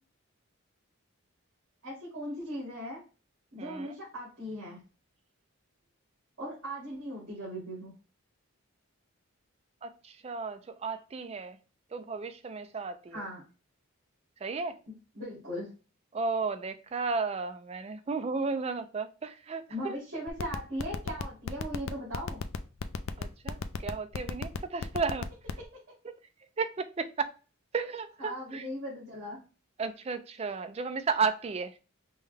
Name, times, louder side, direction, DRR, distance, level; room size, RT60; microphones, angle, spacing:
voice 1, 1.8-3.0 3.5-4.8 6.4-7.9 13.1-13.4 14.9-15.7 19.7-22.4 28.2-29.4, equal, 65° right, 2.4 m, -38 dB
voice 2, 9.8-11.6 11.9-13.2 14.4-14.8 16.1-20.0 23.2-25.3 26.6-27.3 27.7-28.7 29.8-31.8, right 4 dB, 30° right, 0.3 m, -33 dB
sound 1, 20.3-25.6, left 6 dB, 60° left, 0.4 m, -33 dB
5.5 x 2.2 x 3.3 m
head